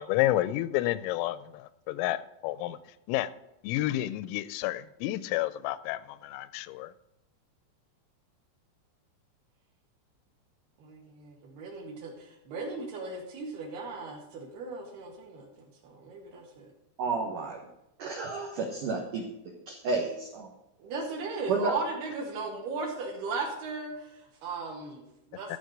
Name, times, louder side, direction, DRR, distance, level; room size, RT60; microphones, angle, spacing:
voice 1, 0.0-2.8 3.1-3.3 3.6-6.9, left 15 dB, 85° left, 15 dB, 3.2 m, -30 dB
voice 2, 10.8-16.7 20.8-25.6, right 3 dB, 60° right, 1 dB, 3.3 m, -37 dB
voice 3, 17.0-17.6 18.0-19.3 19.7-20.5 21.5-21.7, right 4 dB, 75° right, 0 dB, 1.9 m, -31 dB
14.0 x 5.0 x 8.0 m, 0.87 s
omnidirectional pair, 5.8 m